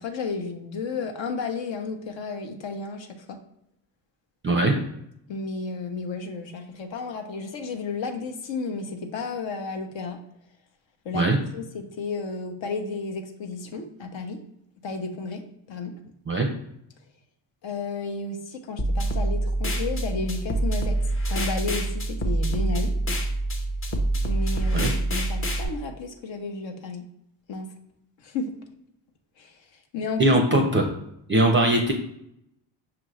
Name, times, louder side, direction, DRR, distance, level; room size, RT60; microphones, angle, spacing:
voice 1, 0.0-3.4 5.3-10.2 11.0-14.4 14.8-15.4 15.7-15.9 17.6-21.0 21.3-22.9 24.3-27.0 27.5-27.7 28.2-28.5 29.4-29.5 29.9-30.4, left 4 dB, 60° left, 5 dB, 0.9 m, -32 dB
sound 1, 18.8-25.6, right 1 dB, 25° left, 0.7 m, -26 dB
voice 2, 30.2-30.9 31.3-31.9, right 1 dB, 25° right, 3 dB, 0.5 m, -20 dB
5.9 x 2.5 x 3.1 m, 0.76 s
cardioid pair, 80°, 50 cm